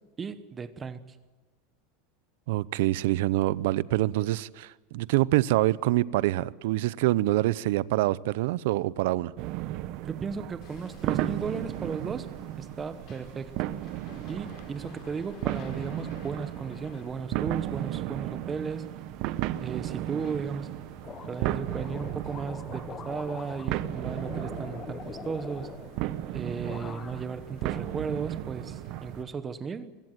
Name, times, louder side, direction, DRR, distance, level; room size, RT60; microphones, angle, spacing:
voice 1, 0.2-1.2 10.0-12.3 12.6-13.5 14.3-18.9 19.6-20.7 21.3-25.7 26.3-29.9, right 5 dB, 20° right, 1.1 m, -35 dB
voice 2, 2.5-9.3, right 17 dB, 70° right, 0.7 m, -25 dB
sound 1, 9.4-29.2, right 14 dB, 50° right, 1.0 m, -35 dB
Hammer, 10.6-29.2, left 6 dB, 45° left, 4.2 m, -53 dB
sound 2, 21.0-26.3 26.6-27.4 27.7-28.6, left 7 dB, 25° left, 1.0 m, -43 dB
23.0 x 16.0 x 9.1 m
supercardioid pair, 150°, 0 cm